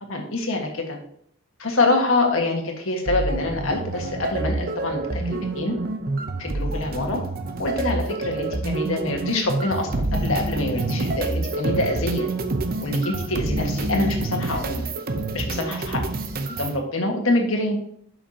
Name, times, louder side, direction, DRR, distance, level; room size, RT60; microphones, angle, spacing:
voice 1, 0.1-1.0 1.6-5.8 6.4-7.2 7.6-12.3 12.8-14.9 15.3-16.0 16.6-17.8, left 2 dB, 75° left, 2 dB, 1.6 m, -25 dB
sound 1, 3.1-16.8, right 2 dB, 45° right, 0.7 m, -27 dB
11.5 x 5.9 x 2.9 m, 0.66 s
head